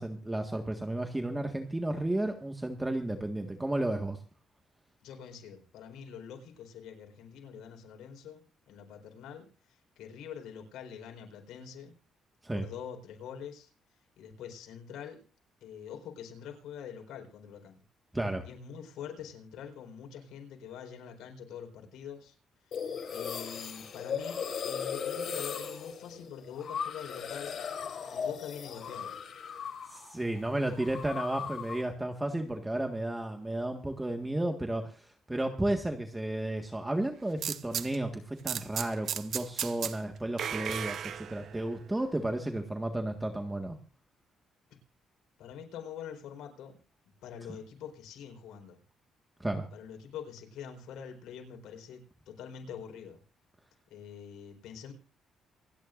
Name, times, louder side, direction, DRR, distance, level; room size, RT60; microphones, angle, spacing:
voice 1, 0.0-4.2 12.4-12.7 18.1-18.5 29.9-43.7 49.4-49.7, right 1 dB, 15° right, 4 dB, 1.7 m, -33 dB
voice 2, 5.0-11.9 12.5-13.7 14.2-15.2 15.6-17.8 18.4-22.4 22.6-22.7 23.1-27.6 28.1-29.1 45.4-46.8 47.2-48.8 49.7-53.2 53.9-54.9, left 8 dB, 85° left, 3 dB, 4.4 m, -45 dB
sound 1, 22.7-30.1 30.4-31.9, left 7 dB, 60° left, 4.3 m, -37 dB
sound 2, 37.4-38.0 38.5-40.0 40.4-41.8, right 8 dB, 65° right, 1.0 m, -35 dB
28.0 x 10.5 x 2.6 m, 0.37 s
cardioid pair, 90°, 0 cm